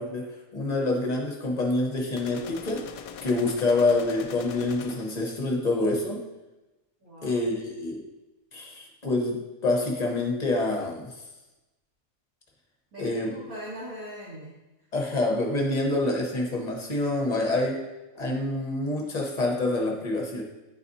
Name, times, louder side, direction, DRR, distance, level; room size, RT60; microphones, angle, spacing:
voice 1, 0.0-2.8 3.2-6.2 7.2-8.0 8.5-11.1 13.0-13.3 14.9-17.8 18.2-20.4, left 2 dB, 30° left, 0 dB, 1.0 m, -27 dB
sound 1, 2.2-5.3, left 7 dB, 75° left, 1.0 m, -42 dB
voice 2, 7.0-7.4 12.9-14.6 16.2-16.3, equal, 70° right, -10 dB, 2.1 m, -41 dB
10.0 x 4.1 x 2.7 m, 1.1 s
omnidirectional pair, 1.5 m